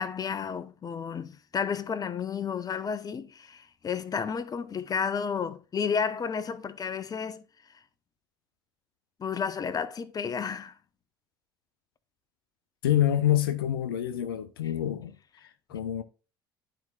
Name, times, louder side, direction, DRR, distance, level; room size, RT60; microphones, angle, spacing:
voice 1, 0.0-7.4 9.2-10.8, left 6 dB, 35° left, 0.9 m, -32 dB
voice 2, 12.8-16.0, left 11 dB, 80° left, 0.6 m, -27 dB
12.5 x 4.8 x 2.4 m
hypercardioid pair, 65°, 12 cm